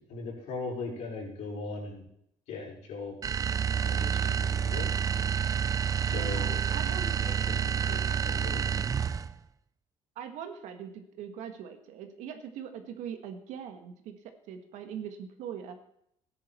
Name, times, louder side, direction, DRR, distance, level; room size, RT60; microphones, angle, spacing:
voice 1, 0.1-2.0 2.5-3.2 3.8-4.9 6.0-6.6 7.0-8.7, left 3 dB, 75° left, -3 dB, 5.5 m, -39 dB
sound 1, 3.2-9.4, right 7 dB, 30° right, 0.5 m, -29 dB
voice 2, 6.1-7.1 10.1-15.8, right 8 dB, 80° right, 7 dB, 1.6 m, -41 dB
13.5 x 9.9 x 4.4 m, 0.72 s
cardioid pair, 105°, 12 cm